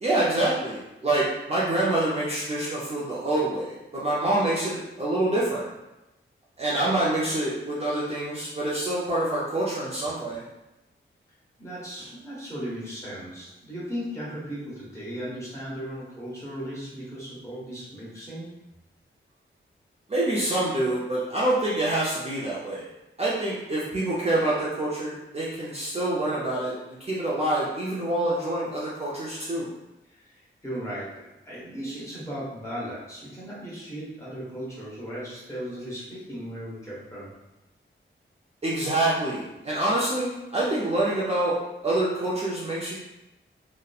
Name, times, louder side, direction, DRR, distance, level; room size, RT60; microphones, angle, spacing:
voice 1, 0.0-5.7 6.6-10.4 20.1-22.9 23.2-29.7 38.6-41.6 41.8-43.0, right 1 dB, 30° right, -7 dB, 0.4 m, -26 dB
voice 2, 11.6-18.5 30.1-37.3, equal, 15° left, -8 dB, 1.0 m, -37 dB
2.8 x 2.1 x 2.3 m, 0.95 s
wide cardioid pair, 140°, 21 cm